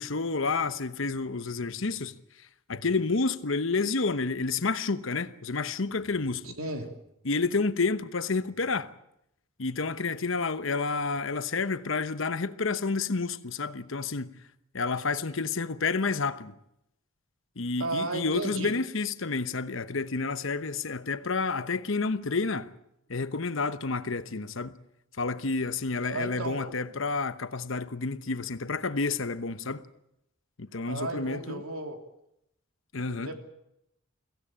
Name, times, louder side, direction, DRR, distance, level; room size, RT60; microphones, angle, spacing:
voice 1, 0.0-2.1 2.7-6.6 7.2-8.9 9.6-14.3 14.7-16.5 17.6-22.7 23.1-24.8 25.2-29.8 30.6-31.6 32.9-33.3, left 4 dB, 60° left, 1.0 m, -30 dB
voice 2, 6.6-6.9 17.8-18.7 26.0-26.8 30.9-32.0 33.1-33.4, right 2 dB, 75° right, 3.1 m, -34 dB
23.0 x 16.0 x 8.8 m
head